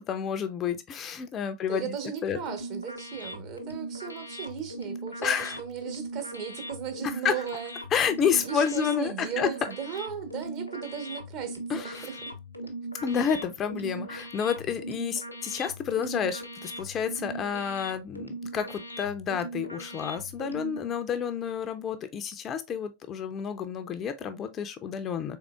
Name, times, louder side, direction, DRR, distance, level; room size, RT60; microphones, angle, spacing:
voice 1, 0.0-1.9 2.2-2.4 5.2-5.6 7.2-7.3 7.9-9.5 11.7-12.1 13.0-25.4, left 7 dB, 30° left, 0.4 m, -30 dB
voice 2, 1.6-7.7 8.3-12.1, right 8 dB, 40° right, 0.9 m, -36 dB
sound 1, 2.3-20.8, right 1 dB, 85° left, 0.5 m, -39 dB
3.7 x 3.5 x 2.3 m
figure-of-eight pair, 90°, 0 cm